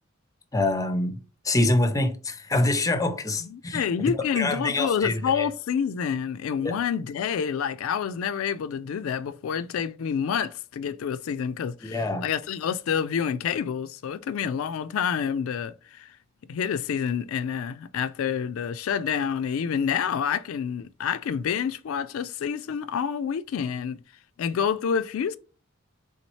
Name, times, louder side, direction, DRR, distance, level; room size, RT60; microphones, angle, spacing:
voice 1, 0.5-3.8 4.3-5.5 6.6-6.8 11.8-12.3, left 2 dB, 15° left, 0.5 m, -25 dB
voice 2, 3.4-16.2 16.5-24.0 24.4-25.4, left 7 dB, 75° left, 0.3 m, -28 dB
4.1 x 3.5 x 3.0 m
head